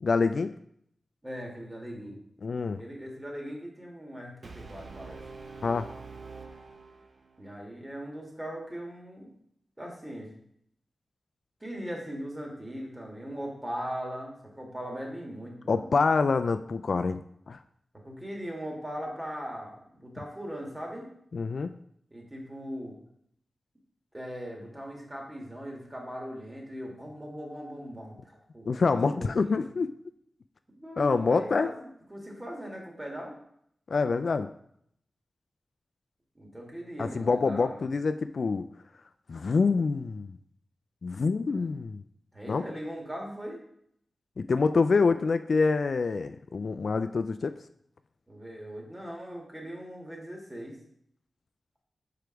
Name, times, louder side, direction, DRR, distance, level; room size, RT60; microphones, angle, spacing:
voice 1, 0.0-0.5 2.4-2.8 5.6-5.9 15.7-17.6 21.3-21.7 28.7-29.9 31.0-31.7 33.9-34.5 37.0-38.7 39.3-40.4 41.0-42.0 42.5-42.6 44.4-47.6, left 4 dB, 65° left, 9 dB, 0.3 m, -26 dB
voice 2, 1.2-2.2 2.8-5.2 7.4-9.3 9.8-10.3 11.6-15.9 18.0-21.1 22.1-22.9 24.1-29.7 30.7-33.4 36.4-37.8 41.5-41.7 42.3-43.6 48.3-50.8, equal, 15° right, -1 dB, 2.0 m, -39 dB
Brass instrument, 4.4-7.5, right 4 dB, 70° right, 0.8 m, -45 dB
5.1 x 4.7 x 4.5 m, 0.69 s
cardioid pair, 55°, 0 cm